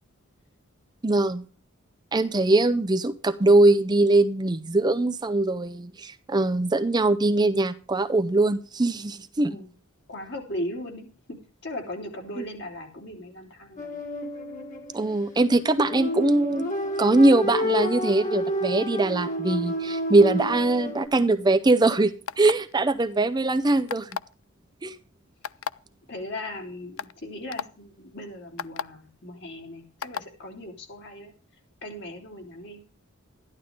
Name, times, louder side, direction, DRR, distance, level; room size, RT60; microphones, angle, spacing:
voice 1, 1.0-1.4 2.1-9.6 12.4-12.5 14.9-16.7 17.0-24.1 24.8-25.0, right 2 dB, 20° right, 10 dB, 0.5 m, -22 dB
voice 2, 10.1-11.1 11.6-14.0 26.1-31.3 31.8-32.8, left 1 dB, 55° left, 3 dB, 3.1 m, -38 dB
flute clip, 13.8-21.1, equal, 40° left, 2.1 m, -30 dB
sound 1, 22.3-22.7 23.9-24.3 25.4-25.7 26.5-26.6 27.0-27.1 27.5-27.7 28.6-28.8 30.0-30.3, left 8 dB, 75° left, 0.4 m, -32 dB
13.0 x 11.5 x 3.7 m, 0.38 s
head